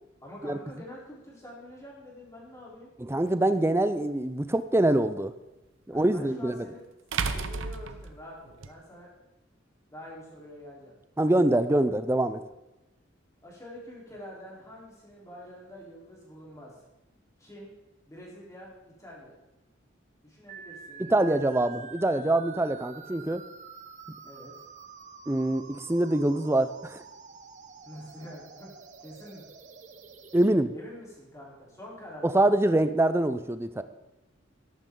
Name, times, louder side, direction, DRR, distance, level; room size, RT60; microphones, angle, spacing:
voice 1, 0.2-2.9 5.9-6.8 7.3-9.1 9.9-10.9 13.4-16.8 17.4-17.7 18.1-19.3 20.2-21.7 24.2-24.5 27.9-28.7 29.0-29.5 30.7-32.5, left 1 dB, 15° left, -5 dB, 3.9 m, -46 dB
voice 2, 3.0-5.3 5.9-6.7 11.2-12.4 21.0-23.4 25.3-27.0 30.3-30.7 32.2-33.8, right 1 dB, 15° right, 11 dB, 0.5 m, -24 dB
sound 1, 3.3-3.4 6.0-6.1 7.1-8.7, right 5 dB, 80° right, 0.7 m, -32 dB
sound 2, 20.5-30.5, right 5 dB, 40° right, 0.9 m, -48 dB
13.5 x 11.5 x 3.8 m, 0.98 s
head